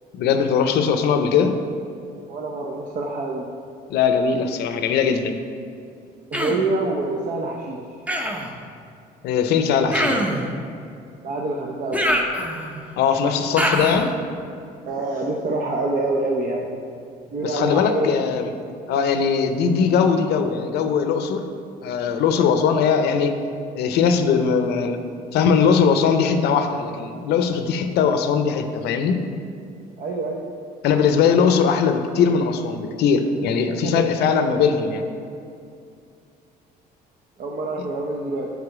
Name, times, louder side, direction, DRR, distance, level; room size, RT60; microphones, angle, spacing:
voice 1, 0.1-1.6 3.9-5.3 9.2-10.3 13.0-14.1 17.4-18.5 18.9-21.4 21.8-23.4 23.7-25.0 25.3-29.2 30.8-35.0, left 6 dB, 75° left, 7 dB, 0.6 m, -20 dB
voice 2, 2.3-3.5 6.3-7.8 11.2-12.2 14.9-16.8 17.3-18.1 30.0-30.5 33.7-35.0 37.4-38.5, right 2 dB, 50° right, 0 dB, 0.7 m, -26 dB
Human voice, 6.3-6.7 8.1-8.5 9.9-10.5 11.9-12.8 13.6-14.1, equal, 10° right, 0.7 m, -24 dB
7.9 x 4.9 x 4.7 m, 2.4 s
cardioid pair, 110°, 17 cm